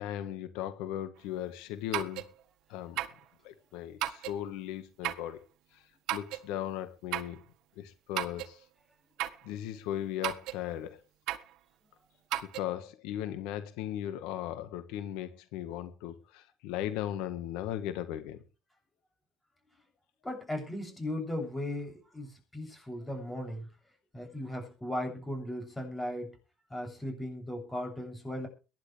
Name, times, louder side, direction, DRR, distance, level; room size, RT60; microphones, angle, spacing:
voice 1, 0.0-2.2 2.7-3.0 3.4-5.4 6.1-7.4 7.8-8.6 9.4-11.0 12.5-18.4, left 11 dB, 85° left, 1.6 m, -37 dB
sound 1, 1.9-2.3 3.0-3.2 4.0-4.4 5.0-5.3 6.1-6.5 7.1-7.4 8.2-8.5 9.2-9.4 10.2-10.6 11.3-11.5 12.3-12.6, right 13 dB, 75° right, 1.5 m, -34 dB
voice 2, 20.2-23.7 24.1-26.4 26.7-28.5, left 1 dB, 15° left, 7.9 m, -37 dB
23.0 x 11.5 x 3.5 m
cardioid pair, 105°, 0 cm